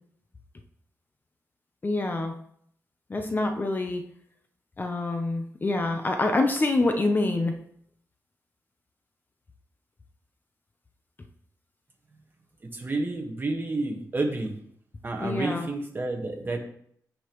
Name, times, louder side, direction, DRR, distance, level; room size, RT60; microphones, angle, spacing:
voice 1, 1.8-2.3 3.1-4.0 4.8-7.5 15.2-15.7, left 2 dB, 30° left, 5 dB, 0.8 m, -26 dB
voice 2, 12.7-14.5 15.0-16.6, right 2 dB, 30° right, 2 dB, 1.6 m, -30 dB
15.5 x 5.3 x 3.1 m, 0.66 s
wide cardioid pair, 130°, 6 cm